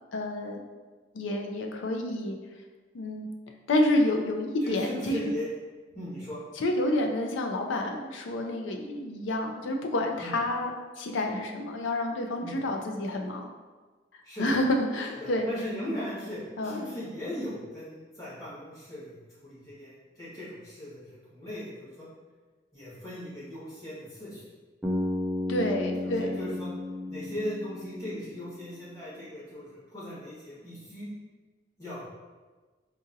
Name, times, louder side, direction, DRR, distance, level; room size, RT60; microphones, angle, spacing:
voice 1, 0.1-0.6 1.1-2.4 2.9-3.3 3.7-5.2 6.6-10.7 11.0-13.4 14.4-15.5 16.6-16.8 25.5-26.4, left 1 dB, 80° left, 3 dB, 0.4 m, -29 dB
voice 2, 4.6-5.5 5.9-6.4 10.2-10.3 12.4-12.6 14.2-14.6 15.2-22.1 22.7-24.4 26.0-26.7 27.1-31.1 31.8-32.1, left 1 dB, 15° left, -11 dB, 1.3 m, -38 dB
Bass guitar, 24.8-28.9, left 1 dB, 5° right, 0.3 m, -33 dB
4.0 x 2.6 x 2.6 m, 1.3 s
head